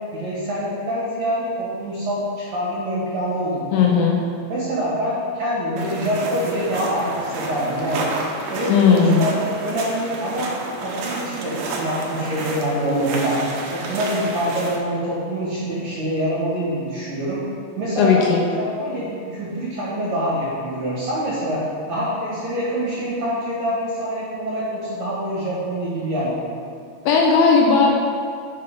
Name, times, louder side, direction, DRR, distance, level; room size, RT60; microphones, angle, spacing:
voice 1, 0.1-3.9 4.5-8.0 8.5-10.5 10.8-17.4 17.8-21.6 21.9-26.6, equal, 50° right, -8 dB, 2.3 m, -25 dB
voice 2, 3.7-4.2 8.7-9.2 18.0-18.4 27.1-27.9, left 5 dB, 75° left, -1 dB, 2.7 m, -16 dB
sound 1, 5.8-14.8, right 3 dB, 70° right, 2.3 m, -30 dB
9.8 x 5.6 x 5.2 m, 2.3 s
omnidirectional pair, 5.1 m